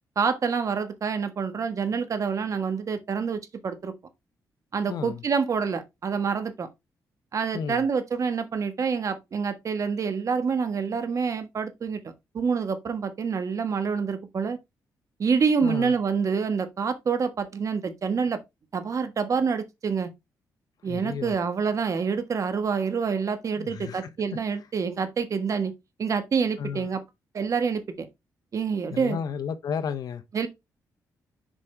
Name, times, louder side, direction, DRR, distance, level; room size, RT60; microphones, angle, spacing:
voice 1, 0.1-3.9 4.7-6.7 7.3-14.6 15.2-18.4 18.7-20.1 20.8-25.7 26.0-27.0 27.3-28.1 28.5-29.2 30.3-30.5, right 5 dB, 50° right, 1.4 m, -27 dB
voice 2, 4.9-5.2 7.5-7.9 15.6-15.9 20.8-21.4 23.6-24.1 26.6-26.9 28.9-30.2, left 7 dB, 65° left, 0.7 m, -33 dB
7.3 x 4.9 x 3.4 m
cardioid pair, 95°, 7 cm